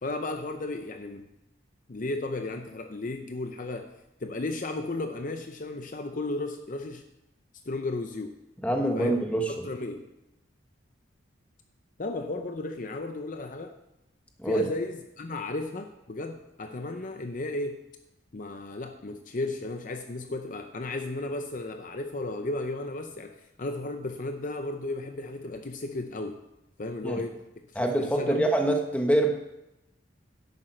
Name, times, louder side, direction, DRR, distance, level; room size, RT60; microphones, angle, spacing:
voice 1, 0.0-1.3 1.9-3.9 4.2-7.0 7.7-8.4 9.0-9.2 9.6-10.1 12.0-13.8 14.4-17.8 18.3-26.4 26.8-28.5, left 2 dB, 40° left, 6 dB, 0.6 m, -34 dB
voice 2, 8.6-9.5 14.4-14.6 27.0-27.2 27.7-29.3, right 1 dB, 5° left, 3 dB, 1.0 m, -25 dB
11.0 x 8.3 x 4.4 m, 0.91 s
head